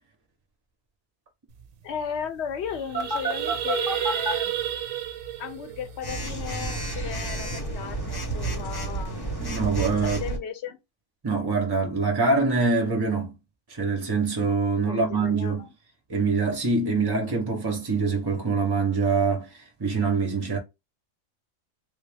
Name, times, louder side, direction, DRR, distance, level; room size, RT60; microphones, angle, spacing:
sound 1, 1.6-1.7 1.9-2.2 2.5-6.9, right 11 dB, 90° right, 1.0 m, -31 dB
voice 1, 1.8-4.6 5.4-9.3 10.0-10.8 14.8-15.7, left 8 dB, 65° left, 0.8 m, -35 dB
Telephone, 2.9-4.3 6.0-10.4, right 2 dB, 25° left, 0.6 m, -30 dB
voice 2, 9.4-10.2 11.2-13.3 13.7-15.6 16.1-20.6, right 4 dB, 30° right, 0.4 m, -24 dB
3.4 x 2.3 x 3.3 m
omnidirectional pair, 1.4 m